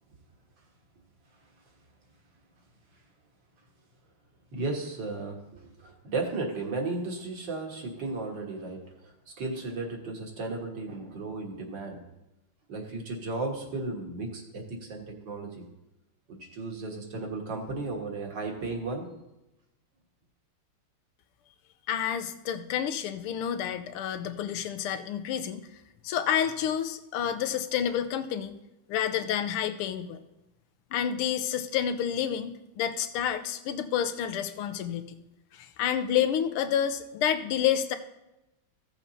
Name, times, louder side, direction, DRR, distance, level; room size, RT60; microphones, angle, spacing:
voice 1, 4.5-12.0 12.7-15.7 16.3-19.1, right 3 dB, 55° right, 1 dB, 2.1 m, -35 dB
voice 2, 21.9-25.7 26.0-28.6 28.9-30.2 30.9-35.2 35.5-38.0, left 9 dB, 85° left, 9 dB, 1.6 m, -29 dB
15.5 x 7.2 x 2.7 m, 0.93 s
omnidirectional pair, 2.4 m